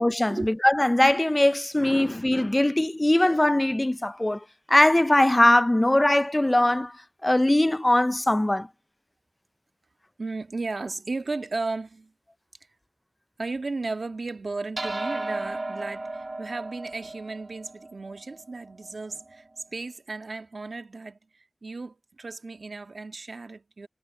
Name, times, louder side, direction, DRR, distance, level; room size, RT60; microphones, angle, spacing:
voice 1, 0.0-4.4 4.7-6.9 7.2-8.7, left 1 dB, 20° left, 0.4 m, -21 dB
voice 2, 10.2-12.1 13.4-23.9, right 3 dB, 65° right, 1.7 m, -35 dB
sound 1, 14.8-19.4, right 2 dB, 45° right, 1.3 m, -35 dB
wide cardioid pair, 80°, 0 cm